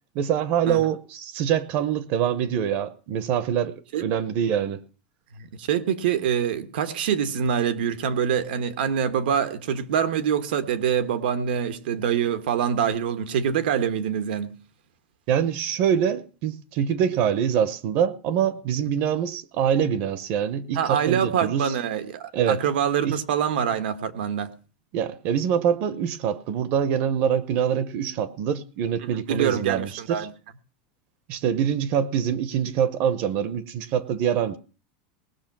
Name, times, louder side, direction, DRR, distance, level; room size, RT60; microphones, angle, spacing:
voice 1, 0.1-4.8 15.3-21.7 22.3-22.6 23.0-23.2 24.9-30.3 31.3-34.6, right 8 dB, 40° right, 0.7 m, -25 dB
voice 2, 5.4-14.6 20.8-24.5 29.3-30.3, right 8 dB, 85° right, 1.3 m, -25 dB
19.0 x 6.4 x 6.0 m
supercardioid pair, 175°, 5 cm